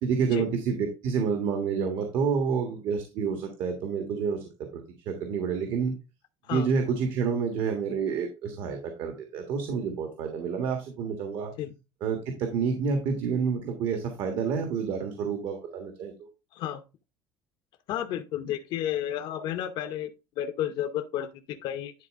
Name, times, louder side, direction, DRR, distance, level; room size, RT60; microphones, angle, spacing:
voice 1, 0.0-5.9 6.5-11.5 12.0-16.3, right 6 dB, 55° right, 1.5 m, -29 dB
voice 2, 16.5-16.8 17.9-20.1 20.4-21.9, left 11 dB, 55° left, 0.7 m, -32 dB
10.5 x 4.3 x 3.6 m
cardioid pair, 165°, 9 cm